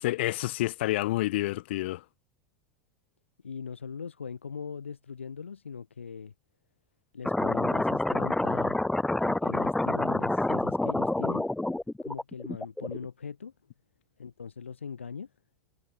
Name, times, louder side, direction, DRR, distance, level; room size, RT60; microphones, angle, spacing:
voice 1, 0.0-2.0, left 17 dB, 65° left, 0.7 m, -29 dB
voice 2, 3.4-6.3 7.1-8.8 9.2-11.5 12.0-13.5 14.2-15.3, left 6 dB, 85° left, 3.2 m, -40 dB
sound 1, 7.2-13.1, left 2 dB, 5° left, 1.2 m, -28 dB
figure-of-eight pair, 80°, 6 cm